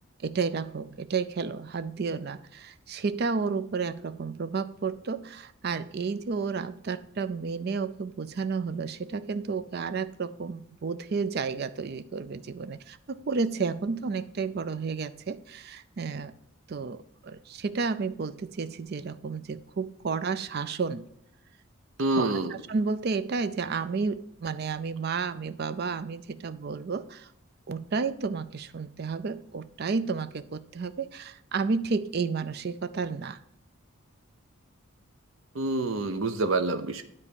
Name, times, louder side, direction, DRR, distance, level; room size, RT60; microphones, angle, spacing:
voice 1, 0.2-16.3 16.7-21.1 22.2-27.3 27.7-33.4, right 4 dB, 45° right, 13 dB, 0.4 m, -31 dB
voice 2, 22.0-22.5 35.5-37.0, right 2 dB, 70° right, 8 dB, 0.8 m, -27 dB
9.8 x 4.1 x 7.0 m, 0.74 s
head